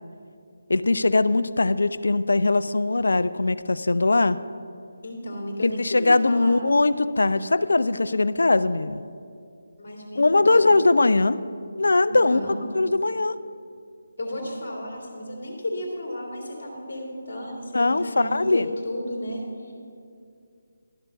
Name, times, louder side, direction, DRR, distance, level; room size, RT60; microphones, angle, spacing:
voice 1, 0.7-4.4 5.6-9.0 10.1-11.4 11.8-12.4 12.7-13.4 17.7-18.7, left 2 dB, 60° left, 15 dB, 0.3 m, -21 dB
voice 2, 5.0-6.6 9.8-10.8 12.0-12.6 14.2-19.7, left 1 dB, 40° left, -4 dB, 2.2 m, -33 dB
12.0 x 6.7 x 5.5 m, 2.4 s
figure-of-eight pair, 150°, 0 cm